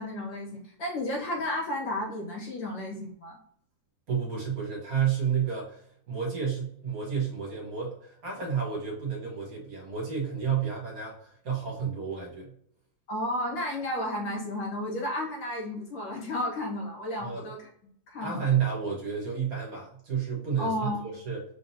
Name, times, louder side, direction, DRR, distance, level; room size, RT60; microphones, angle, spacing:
voice 1, 0.0-3.4 13.1-17.7 18.1-18.5 20.6-21.0, left 1 dB, 85° left, -2 dB, 2.2 m, -32 dB
voice 2, 4.1-12.5 17.2-17.4 18.2-21.4, right 7 dB, 55° right, -2 dB, 1.8 m, -31 dB
4.4 x 3.8 x 2.7 m, 0.64 s
omnidirectional pair, 2.0 m